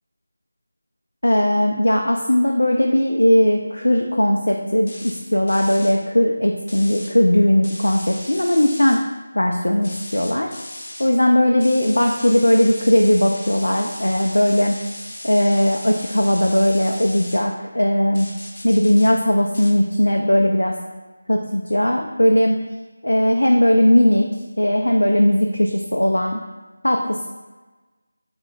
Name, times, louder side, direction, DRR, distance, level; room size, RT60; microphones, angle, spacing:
voice 1, 1.2-9.0 9.4-10.5 11.0-14.8 15.2-18.3 18.6-20.8 21.3-22.6 23.0-24.3 24.6-26.4 26.8-27.3, left 1 dB, 70° left, 2 dB, 0.3 m, -18 dB
sound 1, 4.9-5.2 5.5-5.9 6.7-7.1 7.6-9.0 9.8-11.1 11.6-17.4 18.2-19.1 19.5-19.7, left 1 dB, 45° left, 0.7 m, -37 dB
3.5 x 2.1 x 4.0 m, 1.2 s
figure-of-eight pair, 165°, 0 cm